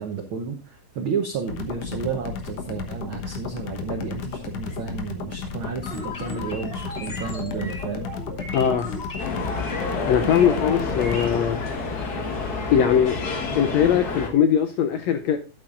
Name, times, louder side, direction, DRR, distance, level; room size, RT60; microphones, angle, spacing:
voice 1, 0.0-8.1, right 6 dB, 85° right, 1.1 m, -32 dB
sound 1, 1.5-11.4, left 5 dB, 60° left, 2.0 m, -34 dB
sound 2, 5.8-11.7, left 2 dB, 25° left, 1.3 m, -36 dB
voice 2, 8.5-8.9 10.1-11.6 12.7-13.2 13.5-15.4, left 8 dB, 75° left, 1.6 m, -20 dB
sound 3, 9.2-14.3, left 4 dB, 45° left, 1.3 m, -29 dB
12.0 x 8.9 x 2.5 m
omnidirectional pair, 3.7 m